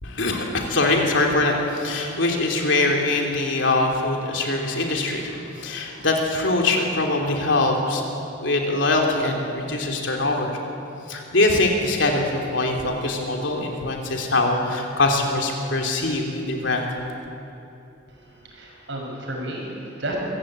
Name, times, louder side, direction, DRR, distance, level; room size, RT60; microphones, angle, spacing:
voice 1, 0.0-8.0 8.4-10.6 11.1-16.9, left 2 dB, 65° left, 1 dB, 3.3 m, -23 dB
voice 2, 18.1-20.2, right 1 dB, 70° right, -1 dB, 6.5 m, -33 dB
25.0 x 16.0 x 8.9 m, 2.7 s
head